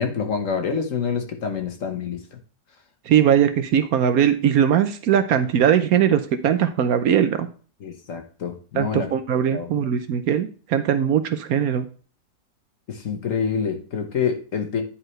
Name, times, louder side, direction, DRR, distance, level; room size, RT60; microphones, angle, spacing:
voice 1, 0.0-2.2 7.8-9.1 9.5-9.7 12.9-14.8, left 6 dB, 55° left, 5 dB, 1.3 m, -26 dB
voice 2, 3.1-7.5 8.8-11.9, right 9 dB, 70° right, 10 dB, 1.1 m, -20 dB
10.0 x 4.5 x 3.1 m, 0.40 s
omnidirectional pair, 1.7 m